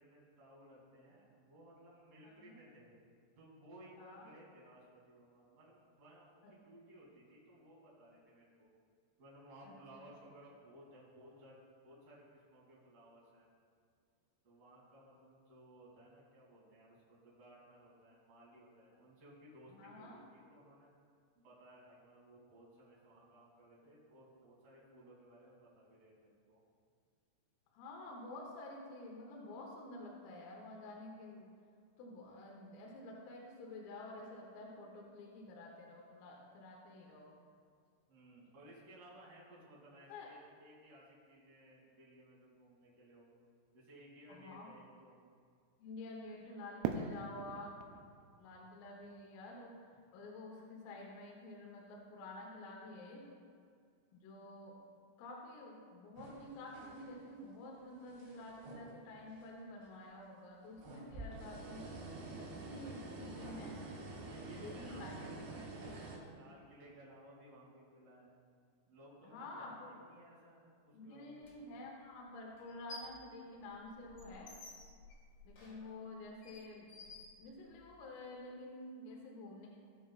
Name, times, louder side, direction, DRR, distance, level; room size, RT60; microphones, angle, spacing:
voice 1, 0.0-2.9 3.4-8.7 9.2-11.6 11.8-13.5 14.4-20.9 21.3-26.6 38.1-43.3 43.7-45.2 64.3-68.4 68.9-71.8 72.7-72.8, right 1 dB, 35° right, -6 dB, 3.1 m, -59 dB
voice 2, 2.2-2.6 4.0-4.3 6.4-6.5 9.6-10.0 19.7-20.2 27.7-31.5 32.0-37.4 40.1-40.3 44.3-44.7 45.8-47.8 48.4-53.4 54.1-54.8 55.2-61.8 62.4-63.8 64.5-65.6 69.2-70.0 70.9-74.5 75.4-76.9 77.4-79.7, left 2 dB, 80° left, -1 dB, 3.7 m, -50 dB
Fireworks, 46.8-49.9, right 7 dB, 85° right, 3.1 m, -43 dB
sound 1, 56.2-57.4 57.8-59.4 59.8-59.9 60.6-66.2, right 2 dB, 65° right, 4.3 m, -48 dB
sound 2, 71.4-71.5 72.6-73.2 73.6-78.0, left 2 dB, 45° left, 2.9 m, -54 dB
18.5 x 7.2 x 2.4 m, 2.2 s
omnidirectional pair, 6.0 m